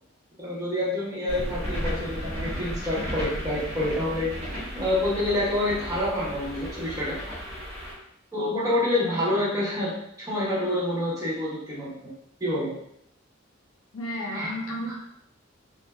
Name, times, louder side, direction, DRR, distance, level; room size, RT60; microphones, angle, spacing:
voice 1, 0.4-4.3 4.7-7.2 8.3-12.1 12.4-12.7 14.3-14.5 14.9-15.0, left 1 dB, 15° right, -7 dB, 0.8 m, -27 dB
sound 1, 1.3-7.9, equal, 45° right, 1.2 m, -34 dB
voice 2, 13.9-14.9, equal, 80° left, 0 dB, 0.6 m, -33 dB
3.1 x 2.5 x 2.3 m, 0.74 s
head